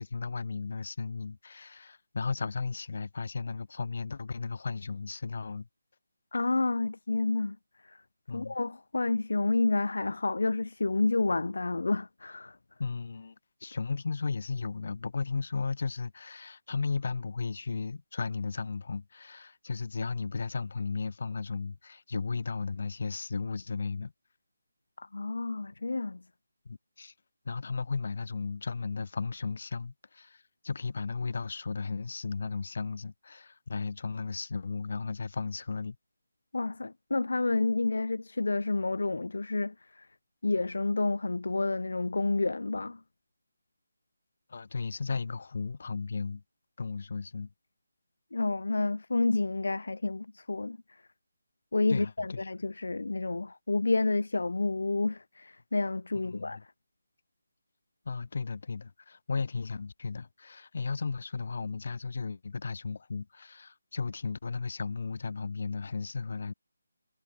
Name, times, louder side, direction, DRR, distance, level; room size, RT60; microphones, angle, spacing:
voice 1, 0.0-5.7 8.3-8.6 12.8-13.4 13.6-24.1 26.6-27.1 27.4-36.0 44.5-46.4 46.8-47.5 51.9-52.5 56.2-56.6 58.0-66.5, left 4 dB, 55° left, 4.1 m, -35 dB
voice 2, 6.3-7.6 7.8-8.0 8.3-12.6 25.0-26.2 36.5-40.1 40.4-43.0 48.3-50.8 51.7-56.6, left 3 dB, 70° left, 0.4 m, -29 dB
figure-of-eight pair, 155°, 0 cm